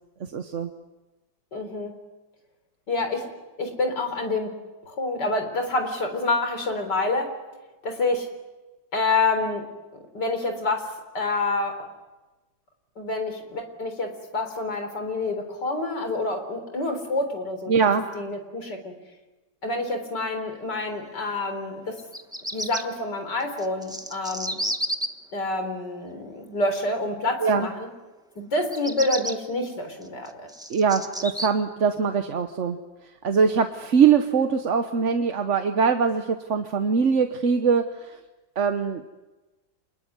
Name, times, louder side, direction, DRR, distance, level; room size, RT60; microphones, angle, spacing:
voice 1, 0.3-0.7 17.7-18.0 27.4-27.7 30.7-32.8 33.2-38.2 38.6-39.1, right 6 dB, 45° right, 7 dB, 1.2 m, -22 dB
voice 2, 1.5-2.0 2.9-3.3 3.6-4.6 4.9-7.3 7.8-8.3 8.9-9.7 10.1-11.9 13.0-17.7 18.1-18.9 19.6-22.0 22.5-24.6 25.3-27.9 28.4-30.5, left 2 dB, 65° left, 6 dB, 4.5 m, -27 dB
Bird vocalization bird call bird song, 22.0-22.8 23.6-25.1 28.6-29.3 30.0-31.5, equal, 5° right, 1.0 m, -30 dB
27.5 x 21.0 x 9.6 m, 1.1 s
omnidirectional pair, 2.0 m